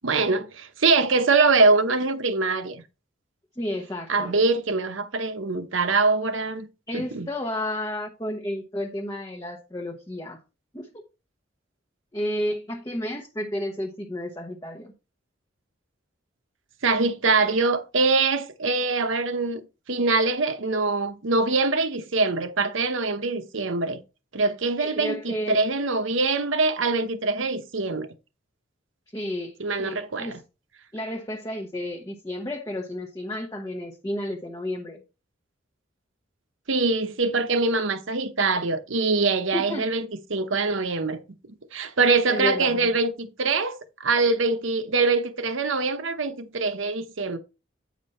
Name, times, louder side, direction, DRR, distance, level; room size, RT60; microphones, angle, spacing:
voice 1, 0.0-2.8 4.1-6.7 6.9-7.3 16.8-19.6 19.9-24.0 24.3-28.1 29.6-30.4 36.7-41.2 41.7-43.7 44.0-47.4, right 3 dB, 80° right, 0.9 m, -23 dB
voice 2, 3.6-4.4 6.9-10.4 10.7-10.9 12.1-14.9 24.8-25.6 29.1-30.4 30.9-35.0 39.5-39.9 42.3-42.9, left 1 dB, 20° left, 0.8 m, -32 dB
8.9 x 5.1 x 4.2 m
head